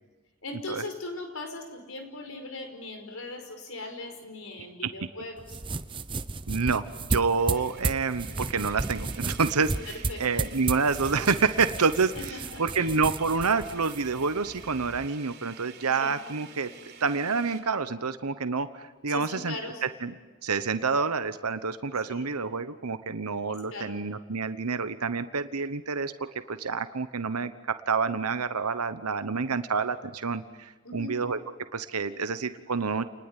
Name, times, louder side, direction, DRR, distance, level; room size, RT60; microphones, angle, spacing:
voice 1, 0.4-5.6 9.9-10.4 12.2-12.9 15.9-16.1 19.1-19.8 22.0-22.3 23.7-24.0 30.8-31.2, left 2 dB, 70° left, 6 dB, 5.2 m, -39 dB
sound 1, 4.1-4.2 4.7-4.8 6.7-17.6, right 5 dB, 45° right, 3.8 m, -49 dB
sound 2, 5.4-15.1, right 3 dB, 20° right, 0.8 m, -34 dB
voice 2, 6.5-9.7 10.2-16.7 17.0-19.6 19.8-20.1 20.4-26.1 26.5-31.4 31.7-33.0, right 4 dB, 90° right, 11 dB, 1.1 m, -28 dB
29.5 x 20.0 x 10.0 m, 1.3 s
head